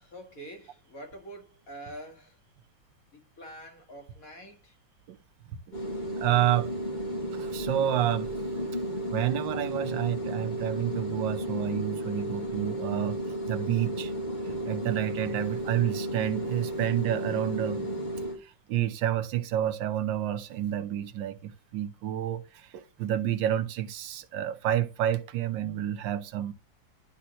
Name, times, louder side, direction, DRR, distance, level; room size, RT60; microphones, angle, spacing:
voice 1, 0.0-2.4 3.1-4.8, right 1 dB, 45° left, 2.4 m, -46 dB
sound 1, 5.7-18.4, right 1 dB, 25° left, 1.9 m, -33 dB
voice 2, 6.2-6.7 7.3-8.3 9.1-13.2 13.5-14.1 14.4-26.5, right 11 dB, 75° right, 1.5 m, -29 dB
11.5 x 4.3 x 3.0 m
omnidirectional pair, 2.1 m